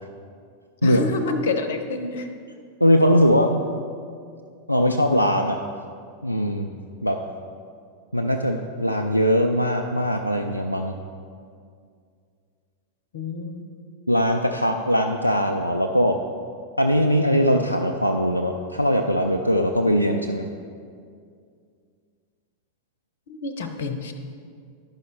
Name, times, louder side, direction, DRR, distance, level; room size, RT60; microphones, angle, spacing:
voice 1, 0.8-2.3 13.1-13.6 23.3-24.1, left 3 dB, 60° left, 7 dB, 0.7 m, -28 dB
voice 2, 2.8-3.5 4.7-5.6 6.2-6.7 7.0-7.2 8.1-10.9 14.1-16.2 16.8-20.5, equal, 90° left, 2 dB, 0.3 m, -21 dB
11.0 x 5.4 x 4.5 m, 2.2 s
figure-of-eight pair, 90°, 0 cm